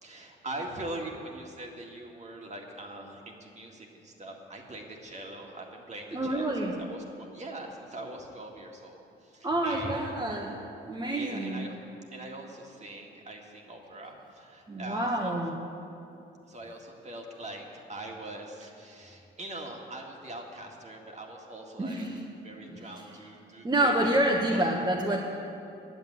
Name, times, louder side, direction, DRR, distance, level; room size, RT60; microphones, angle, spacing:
voice 1, 0.0-6.5 6.8-10.3 10.8-11.8 12.1-15.3 16.5-22.1 22.4-24.0 24.5-24.6, right 1 dB, 35° right, 1 dB, 1.9 m, -42 dB
voice 2, 6.1-6.8 9.4-11.7 14.7-15.6 21.8-22.2 22.7-23.3 23.6-25.2, right 1 dB, 20° right, -3 dB, 1.2 m, -28 dB
9.6 x 7.6 x 9.3 m, 2.7 s
cardioid pair, 90°, 20 cm